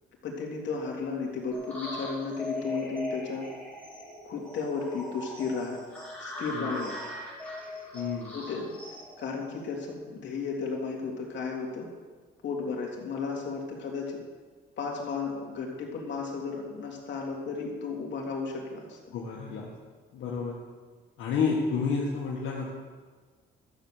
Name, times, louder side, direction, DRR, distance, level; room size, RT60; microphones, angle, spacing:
voice 1, 0.2-3.5 4.2-5.8 6.2-6.9 8.3-8.7 9.2-11.9 12.4-14.2 14.8-19.0, left 4 dB, 65° left, -1 dB, 3.1 m, -34 dB
sound 1, 1.5-9.9, left 1 dB, 5° left, 4.8 m, -40 dB
voice 2, 7.9-8.3 19.1-19.7 20.1-20.6 21.2-22.7, left 5 dB, 85° left, -4 dB, 1.8 m, -30 dB
13.0 x 7.6 x 6.6 m, 1.4 s
cardioid pair, 90°, 20 cm